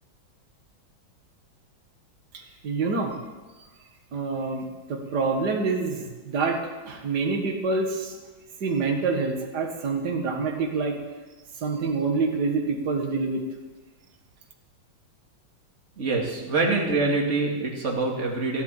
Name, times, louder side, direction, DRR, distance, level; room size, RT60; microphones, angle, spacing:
voice 1, 2.6-3.1 4.1-4.6 4.9-6.6 6.9-8.2 8.6-11.0 11.6-13.4, right 4 dB, 55° right, 2 dB, 2.3 m, -26 dB
voice 2, 16.0-18.6, right 3 dB, 35° right, 0 dB, 2.6 m, -25 dB
16.0 x 9.6 x 7.3 m, 1.2 s
omnidirectional pair, 2.2 m